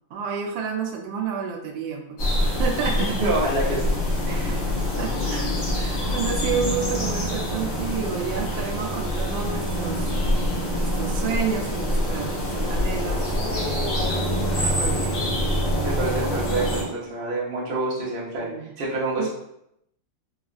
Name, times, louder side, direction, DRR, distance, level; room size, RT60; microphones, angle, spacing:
voice 1, 0.1-3.2 5.0-10.1 10.7-14.0 14.6-15.2 16.0-16.3 18.4-18.7 19.2-19.3, right 6 dB, 90° right, 2 dB, 1.3 m, -30 dB
sound 1, 2.2-16.8, equal, 50° left, 1.3 m, -25 dB
voice 2, 3.2-3.8 4.3-4.6 15.7-19.3, right 2 dB, 45° right, -7 dB, 0.7 m, -27 dB
3.8 x 2.3 x 2.4 m, 0.79 s
omnidirectional pair, 2.0 m